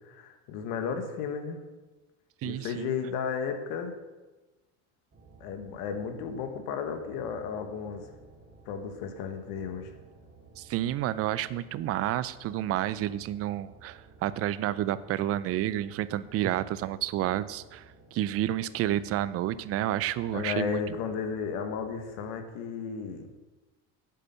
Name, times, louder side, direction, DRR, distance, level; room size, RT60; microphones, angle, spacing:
voice 1, 0.0-1.6 2.4-3.9 5.4-8.1 8.6-9.9 20.3-23.3, left 6 dB, 80° left, 7 dB, 1.5 m, -34 dB
voice 2, 2.4-2.9 10.6-20.8, right 13 dB, 45° right, 16 dB, 0.5 m, -30 dB
sound 1, 5.1-22.3, right 3 dB, 25° right, 2.4 m, -55 dB
8.3 x 8.2 x 5.6 m, 1.2 s
cardioid pair, 150°, 33 cm